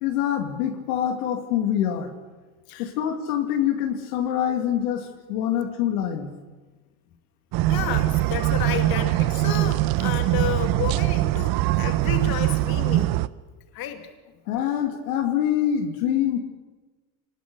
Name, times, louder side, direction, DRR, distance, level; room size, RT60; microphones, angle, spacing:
voice 1, 0.0-2.1 2.8-6.3 14.5-16.4, left 10 dB, 85° left, 5 dB, 2.3 m, -25 dB
sound 1, 7.5-13.3, right 16 dB, 55° right, 0.7 m, -22 dB
voice 2, 7.7-13.2 13.7-14.1, left 10 dB, 55° left, 6 dB, 2.4 m, -32 dB
23.0 x 20.0 x 6.7 m, 1.3 s
supercardioid pair, 105°, 43 cm